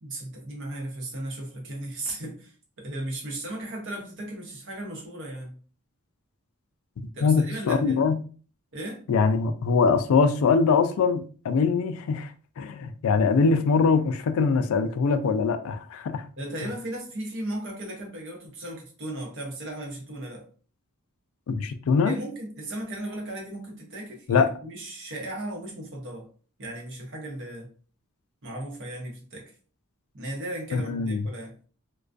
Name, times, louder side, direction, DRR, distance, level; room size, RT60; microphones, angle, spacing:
voice 1, 0.0-5.6 7.1-8.0 8.7-9.0 16.4-20.5 22.0-26.3 26.6-27.7 28.4-29.5 30.1-31.5, right 1 dB, 60° right, 0.8 m, -36 dB
voice 2, 7.2-8.2 9.1-12.3 12.6-16.2 21.5-22.1 24.3-24.5 30.7-31.3, left 5 dB, 65° left, 0.3 m, -22 dB
2.2 x 2.2 x 2.4 m
head